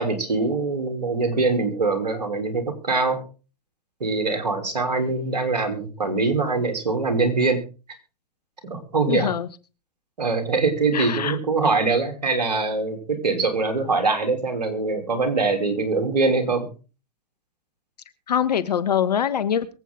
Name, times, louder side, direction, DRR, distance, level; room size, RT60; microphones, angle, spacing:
voice 1, 0.0-3.2 4.0-7.6 8.7-9.3 10.2-16.7, right 3 dB, 90° right, 5 dB, 3.3 m, -23 dB
voice 2, 9.1-9.5 10.9-11.4 18.3-19.7, left 8 dB, 80° left, 15 dB, 1.3 m, -23 dB
23.0 x 8.4 x 3.7 m, 0.34 s
hypercardioid pair, 105°, 20 cm